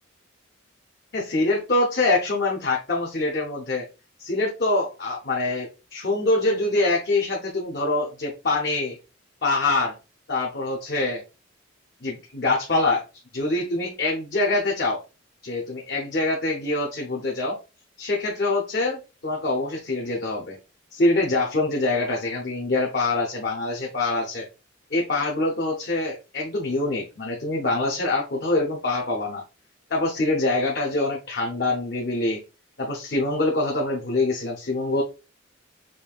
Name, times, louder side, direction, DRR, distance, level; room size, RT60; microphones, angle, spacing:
voice 1, 1.1-3.9 4.2-9.0 9.4-9.9 10.3-11.2 12.0-13.0 13.3-15.0 15.4-17.6 18.0-20.6 20.9-24.5 24.9-29.4 29.9-32.4 32.8-35.0, left 2 dB, 50° left, -1 dB, 0.8 m, -24 dB
5.3 x 2.7 x 2.3 m, 0.30 s
head